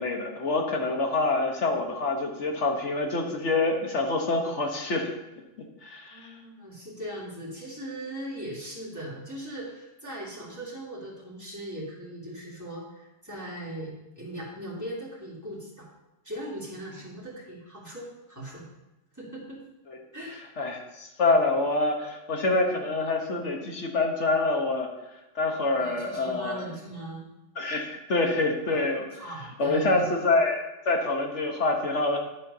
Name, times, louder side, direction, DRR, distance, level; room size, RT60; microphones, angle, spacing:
voice 1, 0.0-5.1 5.8-6.3 19.9-20.0 20.6-24.9 25.3-26.7 27.6-29.1 29.6-32.2, left 3 dB, 60° left, 2 dB, 1.6 m, -26 dB
voice 2, 6.1-15.9 16.2-18.6 19.1-19.6 20.1-20.4 25.8-27.3 28.7-28.8 29.2-30.1, right 1 dB, 15° right, -7 dB, 2.7 m, -39 dB
11.0 x 4.5 x 5.5 m, 0.99 s
omnidirectional pair, 1.4 m